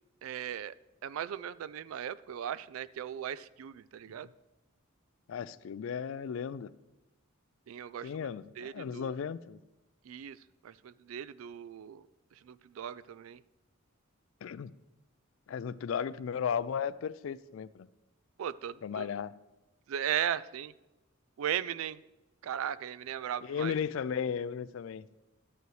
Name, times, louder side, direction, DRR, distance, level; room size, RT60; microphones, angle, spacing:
voice 1, 0.2-0.7 1.0-4.3 7.7-8.1 8.6-9.1 10.1-10.4 10.6-12.1 12.4-13.4 18.4-19.1 19.9-20.7 21.4-22.0 22.4-23.7, right 9 dB, 75° right, 0.3 m, -37 dB
voice 2, 5.3-6.7 8.0-9.6 14.4-14.7 15.5-17.9 18.8-19.3 23.4-25.1, left 7 dB, 65° left, 0.3 m, -35 dB
12.0 x 9.4 x 3.2 m
head